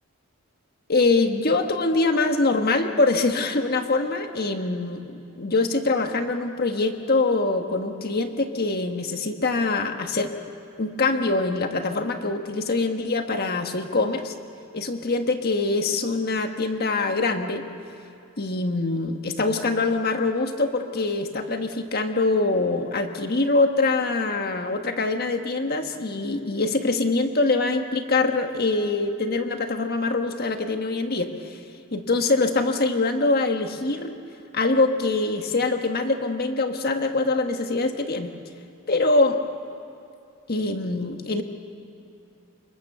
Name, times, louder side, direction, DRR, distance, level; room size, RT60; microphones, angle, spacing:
voice 1, 0.9-10.3 10.8-14.3 14.7-17.6 18.4-31.6 31.9-34.1 34.5-38.3 38.9-39.4 40.5-41.4, left 3 dB, 45° left, 5 dB, 1.5 m, -24 dB
27.0 x 22.5 x 6.9 m, 2.7 s
head